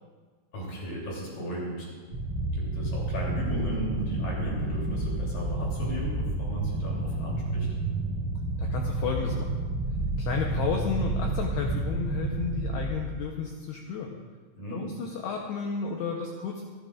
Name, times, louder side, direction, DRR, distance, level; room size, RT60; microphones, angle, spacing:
voice 1, 0.5-1.9 2.5-7.7 14.6-14.9, right 1 dB, 45° left, -4 dB, 4.2 m, -35 dB
sound 1, 2.1-12.9, right 2 dB, 35° right, 3.6 m, -30 dB
voice 2, 8.6-9.5 10.2-14.2 14.7-16.6, left 5 dB, 85° left, 1 dB, 2.3 m, -32 dB
26.5 x 12.0 x 2.5 m, 1.5 s
omnidirectional pair, 5.8 m